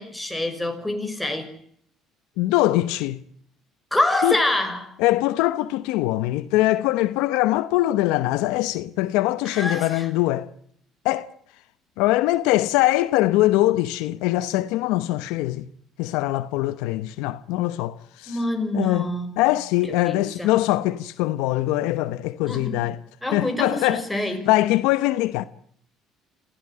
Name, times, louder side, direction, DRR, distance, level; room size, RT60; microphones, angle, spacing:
voice 1, 0.0-1.5 3.9-4.9 9.5-10.1 18.3-19.4 20.0-20.5 22.5-22.8 23.2-24.5, left 1 dB, 5° left, 5.9 m, -26 dB
voice 2, 2.4-3.2 4.2-4.3 5.0-10.5 11.0-11.3 12.0-15.7 16.0-18.4 18.7-19.1 19.4-23.0 23.3-24.0 24.4-25.4, left 16 dB, 85° left, 0.9 m, -22 dB
26.5 x 16.0 x 9.9 m
supercardioid pair, 90°, 0 cm